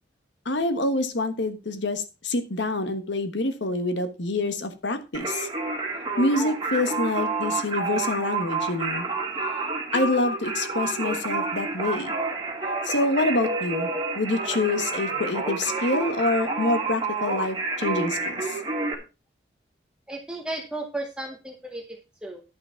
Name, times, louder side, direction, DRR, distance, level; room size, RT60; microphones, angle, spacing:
voice 1, 0.4-5.5 6.2-9.1 9.9-12.1 12.8-13.9 14.1-18.6, left 2 dB, 80° left, 9 dB, 1.3 m, -26 dB
Singing, 5.1-18.9, right 3 dB, 25° right, 2.4 m, -29 dB
voice 2, 20.1-22.4, right 1 dB, 5° right, 2 dB, 1.1 m, -34 dB
11.0 x 5.8 x 5.7 m, 0.30 s
head